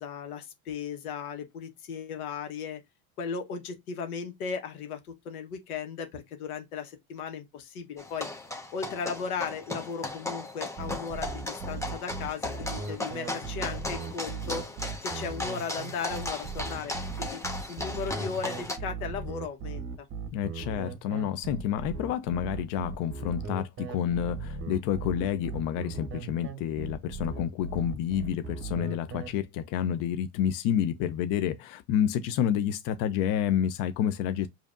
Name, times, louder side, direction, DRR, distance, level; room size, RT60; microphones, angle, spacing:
voice 1, 0.0-2.8 3.2-5.0 5.2-8.3 8.7-14.6 15.0-16.9 17.2-17.4 17.7-20.1, left 6 dB, 85° left, 1.4 m, -36 dB
sound 1, 8.0-18.8, left 2 dB, 5° left, 1.1 m, -36 dB
sound 2, 10.8-29.3, right 4 dB, 30° right, 0.8 m, -37 dB
voice 2, 20.3-34.5, left 9 dB, 50° left, 0.6 m, -29 dB
4.9 x 2.8 x 2.5 m
supercardioid pair, 110°, 43 cm